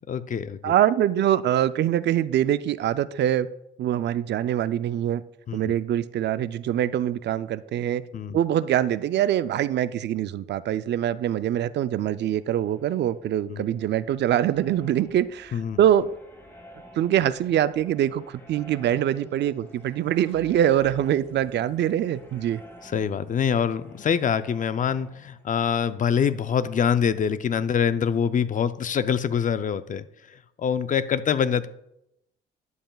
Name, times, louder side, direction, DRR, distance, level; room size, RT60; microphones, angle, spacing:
voice 1, 0.1-0.7 5.5-5.7 8.1-8.4 13.5-13.6 15.5-15.8 22.8-30.0 30.6-31.7, left 7 dB, 40° left, 13 dB, 0.5 m, -25 dB
voice 2, 0.6-3.5 3.8-5.2 5.5-8.0 8.3-16.1 17.0-22.6, right 11 dB, 60° right, 15 dB, 0.4 m, -24 dB
sound 1, 12.2-28.7, equal, 10° left, 1.7 m, -52 dB
sound 2, 20.3-24.1, right 1 dB, 30° right, 2.7 m, -54 dB
11.0 x 7.6 x 2.3 m, 0.81 s
cardioid pair, 90°, 20 cm